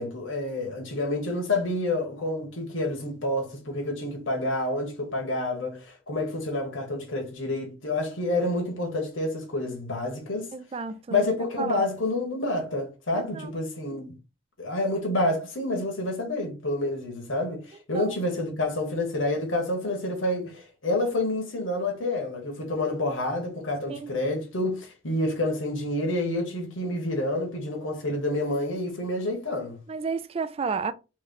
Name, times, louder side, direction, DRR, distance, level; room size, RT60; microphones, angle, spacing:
voice 1, 0.0-10.5 11.1-14.1 14.6-29.8, left 2 dB, 70° left, 1.2 m, -28 dB
voice 2, 10.5-11.3 11.6-11.9 13.1-13.5 17.9-18.1 23.9-24.1 29.9-30.9, right 5 dB, 30° right, 0.3 m, -32 dB
3.2 x 3.1 x 3.8 m
head